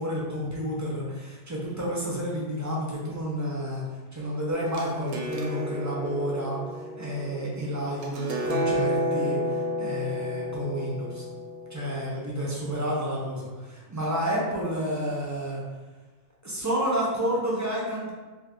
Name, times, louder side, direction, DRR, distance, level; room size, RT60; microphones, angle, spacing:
voice 1, 0.0-3.8 4.1-11.2 11.7-15.6 16.4-18.1, equal, 25° right, -5 dB, 0.5 m, -30 dB
sound 1, 4.5-12.2, left 1 dB, 65° right, 0.7 m, -31 dB
2.6 x 2.4 x 3.5 m, 1.2 s
omnidirectional pair, 1.0 m